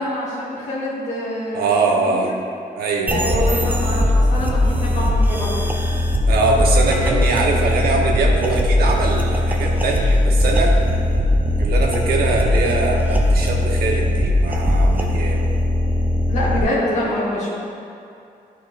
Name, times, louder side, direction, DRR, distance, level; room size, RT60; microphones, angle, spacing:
voice 1, 0.0-2.3 3.1-5.7 7.0-7.5 16.2-17.6, left 1 dB, 50° left, -9 dB, 1.5 m, -25 dB
voice 2, 1.5-2.3 2.8-3.8 6.3-10.8 11.6-15.4, right 3 dB, 90° right, 0 dB, 1.0 m, -22 dB
sound 1, 3.1-16.6, left 1 dB, 10° right, 0.4 m, -19 dB
11.0 x 4.5 x 2.5 m, 2.6 s
wide cardioid pair, 180°, 15 cm